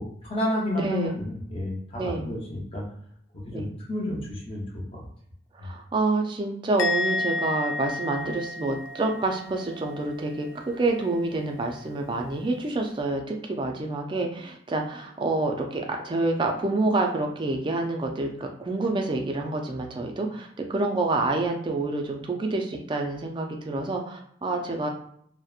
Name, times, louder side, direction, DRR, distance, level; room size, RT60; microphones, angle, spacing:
voice 1, 0.0-2.8 3.3-5.0 5.6-5.7, left 1 dB, 30° left, -3 dB, 0.6 m, -31 dB
voice 2, 0.8-1.2 2.0-2.3 3.5-3.7 5.6-24.9, right 2 dB, 25° right, 2 dB, 0.3 m, -28 dB
Musical instrument, 6.8-10.2 10.4-10.9, left 2 dB, 90° left, 0.4 m, -31 dB
2.7 x 2.0 x 2.3 m, 0.68 s
head